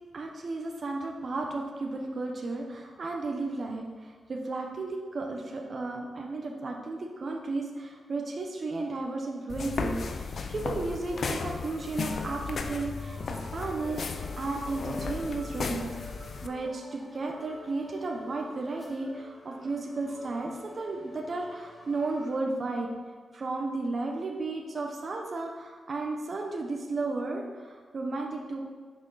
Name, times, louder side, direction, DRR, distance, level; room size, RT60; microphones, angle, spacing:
voice 1, 0.1-15.9 16.4-22.9 23.3-28.6, right 3 dB, 50° right, 1 dB, 1.1 m, -34 dB
sound 1, 9.5-16.5, left 4 dB, 60° left, 0.7 m, -35 dB
sound 2, 11.1-22.4, equal, ahead, 1.4 m, -48 dB
10.5 x 6.3 x 4.1 m, 1.5 s
cardioid pair, 95°, 0 cm